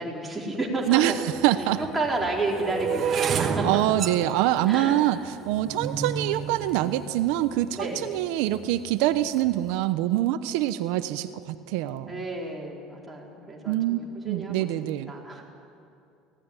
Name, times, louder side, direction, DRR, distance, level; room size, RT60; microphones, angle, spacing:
voice 1, 0.0-1.2 1.6-3.8 4.7-5.0 7.7-8.1 12.1-15.4, right 2 dB, 5° right, -4 dB, 4.6 m, -31 dB
sound 1, 0.9-1.0 1.7-7.9 8.5-8.9 9.1-9.5, right 6 dB, 35° right, 1.3 m, -31 dB
voice 2, 0.9-1.8 3.6-12.2 13.7-14.0 14.2-15.1, right 14 dB, 80° right, 11 dB, 0.9 m, -25 dB
24.0 x 17.5 x 9.9 m, 2.6 s
cardioid pair, 150°, 0 cm